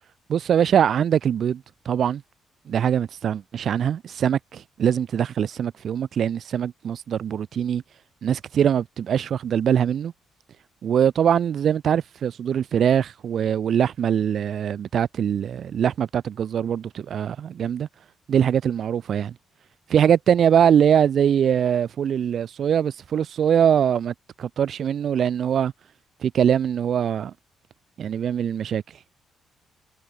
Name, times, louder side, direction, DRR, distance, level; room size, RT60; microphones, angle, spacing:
voice 1, 0.3-2.2 2.7-7.8 8.2-10.1 10.8-17.9 18.3-19.3 19.9-25.7 26.2-27.3 28.0-28.8, right 8 dB, 60° right, 2.0 m, -22 dB
cardioid pair, 90°, 0 cm